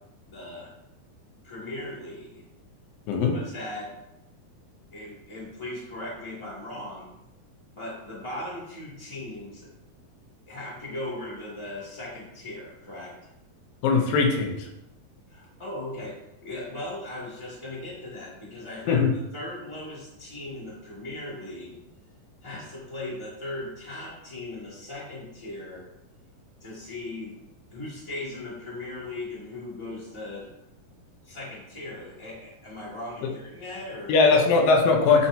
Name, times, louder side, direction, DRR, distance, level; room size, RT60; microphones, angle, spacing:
voice 1, 0.3-0.7 1.4-2.4 3.3-3.9 4.9-7.1 7.7-9.7 10.5-13.1 15.3-16.2 16.4-19.0 19.3-21.8 22.4-25.8 26.6-27.4 27.7-30.5 31.2-34.1, left 1 dB, 10° left, -6 dB, 2.4 m, -38 dB
voice 2, 3.1-3.4 13.8-14.7 18.9-19.1 34.1-35.3, left 4 dB, 85° left, 2 dB, 2.7 m, -20 dB
9.5 x 5.8 x 2.9 m, 0.86 s
omnidirectional pair, 3.9 m